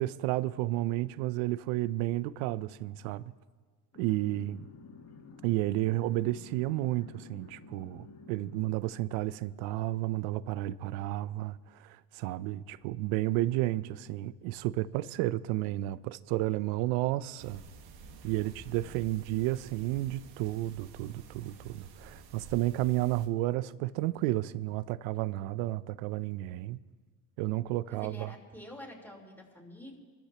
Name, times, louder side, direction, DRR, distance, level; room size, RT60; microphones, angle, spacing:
voice 1, 0.0-3.3 4.0-4.7 5.4-17.6 18.2-26.8 27.4-28.3, right 16 dB, 75° right, 0.7 m, -32 dB
sound 1, 3.9-9.0, left 4 dB, 35° left, 1.6 m, -52 dB
sound 2, 17.4-23.3, right 4 dB, 55° right, 1.7 m, -50 dB
voice 2, 27.9-30.0, left 1 dB, 5° left, 3.9 m, -47 dB
25.5 x 13.5 x 3.0 m
supercardioid pair, 90°, 46 cm